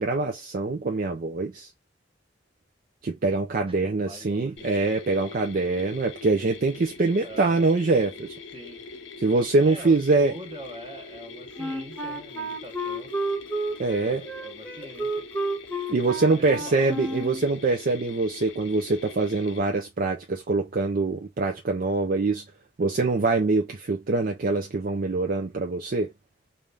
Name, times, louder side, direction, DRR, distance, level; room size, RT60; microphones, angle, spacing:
voice 1, 0.0-1.7 3.0-8.4 9.2-10.3 13.8-14.2 15.9-22.4 22.8-26.1, right 3 dB, 50° right, 0.5 m, -24 dB
voice 2, 3.7-4.7 7.2-7.7 8.5-8.8 9.6-13.1 14.1-15.3 16.4-17.0, right 1 dB, 30° right, 1.1 m, -44 dB
Mechanisms, 4.6-19.6, left 4 dB, 80° left, 0.6 m, -43 dB
Wind instrument woodwind instrument, 11.6-17.5, right 1 dB, 10° left, 1.1 m, -31 dB
3.4 x 2.6 x 3.3 m
head